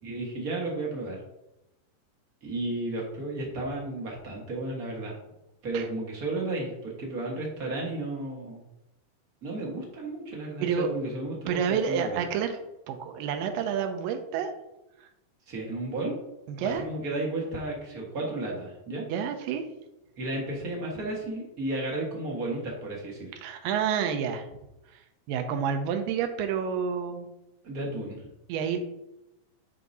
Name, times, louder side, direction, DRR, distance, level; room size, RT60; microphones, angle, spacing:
voice 1, 0.0-1.2 2.4-5.2 5.6-8.6 9.4-12.2 15.5-16.2 16.6-19.1 20.2-23.3 27.6-28.2, right 2 dB, 50° right, -2 dB, 1.1 m, -33 dB
voice 2, 11.5-12.6 12.9-14.5 15.0-15.1 16.5-16.8 19.1-19.7 23.4-24.5 25.3-27.3 28.5-28.8, right 7 dB, 80° right, 6 dB, 2.4 m, -29 dB
10.5 x 4.6 x 2.8 m, 0.89 s
omnidirectional pair, 4.0 m